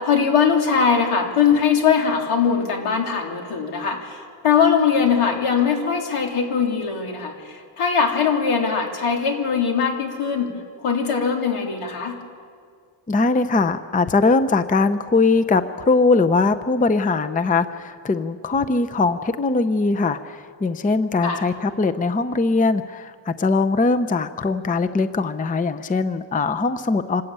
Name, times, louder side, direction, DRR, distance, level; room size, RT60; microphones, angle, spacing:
voice 1, 0.0-10.5 10.8-12.2 21.2-21.5, left 6 dB, 85° left, 2 dB, 3.2 m, -21 dB
voice 2, 13.1-20.2 20.6-27.2, left 3 dB, 15° left, 10 dB, 0.6 m, -21 dB
26.0 x 13.5 x 8.8 m, 2.2 s
wide cardioid pair, 135°, 50 cm